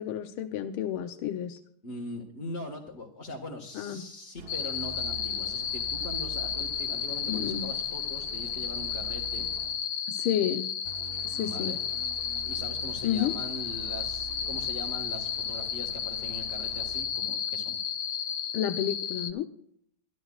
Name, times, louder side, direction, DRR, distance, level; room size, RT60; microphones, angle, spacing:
voice 1, 0.0-1.6 3.7-4.0 7.3-7.7 10.1-10.7 11.2-11.8 13.0-13.3 18.5-19.5, left 10 dB, 80° left, 6 dB, 1.6 m, -30 dB
voice 2, 1.8-9.5 11.3-11.8 12.4-17.8, left 2 dB, 35° left, -1 dB, 1.7 m, -41 dB
sound 1, 4.4-10.0 10.8-17.2, right 6 dB, 45° right, 0.8 m, -46 dB
sound 2, 4.5-19.3, left 8 dB, 65° left, 1.5 m, -33 dB
24.0 x 12.5 x 2.4 m, 0.62 s
omnidirectional pair, 2.3 m